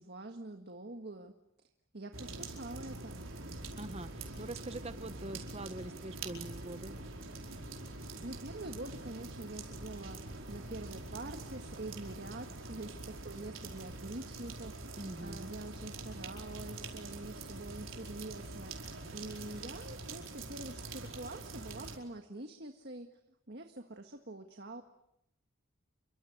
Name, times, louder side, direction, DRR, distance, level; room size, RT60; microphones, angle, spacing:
voice 1, 0.0-1.3 1.9-3.3 7.9-23.1 23.5-24.8, right 2 dB, 50° right, 5 dB, 1.7 m, -46 dB
sound 1, 2.1-22.0, right 2 dB, 75° right, 4.9 m, -45 dB
voice 2, 3.8-6.9 15.0-15.5, right 2 dB, 30° right, 12 dB, 1.0 m, -44 dB
29.5 x 24.0 x 8.0 m, 0.82 s
head